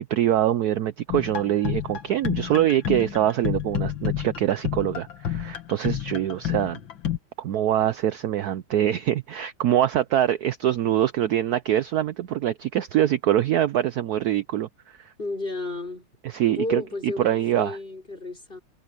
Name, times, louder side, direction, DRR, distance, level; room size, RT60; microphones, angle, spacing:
voice 1, 0.0-6.8 7.4-15.1 16.2-17.8, right 11 dB, 75° right, 0.9 m, -24 dB
sound 1, 1.1-7.2, left 10 dB, 65° left, 2.4 m, -30 dB
voice 2, 15.2-16.1 16.4-18.6, left 2 dB, 25° left, 4.5 m, -32 dB
omnidirectional pair, 2.3 m